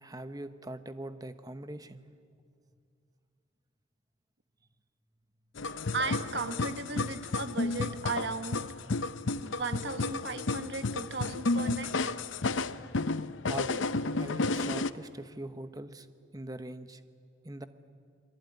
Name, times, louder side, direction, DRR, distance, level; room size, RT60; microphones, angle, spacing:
voice 1, 0.0-2.0 13.5-13.9 14.2-16.1 16.3-17.0 17.4-17.7, right 1 dB, 20° right, 10 dB, 1.0 m, -41 dB
sound 1, 5.6-14.9, left 3 dB, 80° left, 0.7 m, -32 dB
voice 2, 5.9-8.6 9.4-12.0, right 3 dB, 60° right, 9 dB, 1.3 m, -36 dB
28.0 x 22.0 x 9.6 m, 2.3 s
head